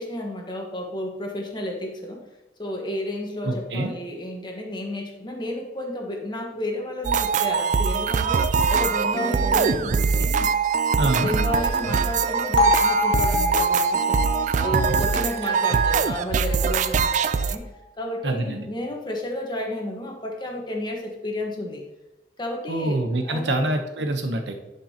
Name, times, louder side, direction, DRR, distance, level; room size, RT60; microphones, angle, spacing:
voice 1, 0.0-2.2 2.6-10.5 11.0-14.2 14.6-17.6 18.0-21.8 22.4-23.7, left 1 dB, 25° left, 1 dB, 1.3 m, -32 dB
voice 2, 3.4-3.9 11.0-11.3 15.7-15.8 18.2-18.7 22.7-24.5, right 2 dB, 75° right, 5 dB, 0.9 m, -25 dB
sound 1, 7.0-17.6, right 5 dB, 45° right, 0.3 m, -22 dB
Bell, 12.6-16.6, left 4 dB, 75° left, 1.4 m, -26 dB
10.5 x 5.4 x 2.9 m, 0.98 s
head